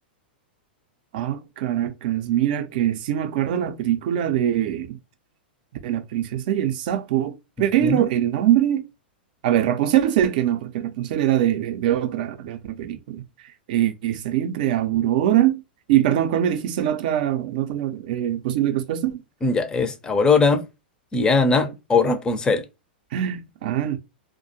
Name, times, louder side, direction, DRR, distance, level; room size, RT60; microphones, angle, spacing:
voice 1, 1.1-5.0 5.8-8.8 9.4-13.2 13.7-15.6 15.9-19.2 21.6-21.7 23.1-24.0, right 11 dB, 55° right, 0.5 m, -23 dB
voice 2, 7.8-8.1 19.4-20.6 21.1-22.6, left 4 dB, 15° left, 0.4 m, -20 dB
2.4 x 2.1 x 2.7 m
hypercardioid pair, 110°, 6 cm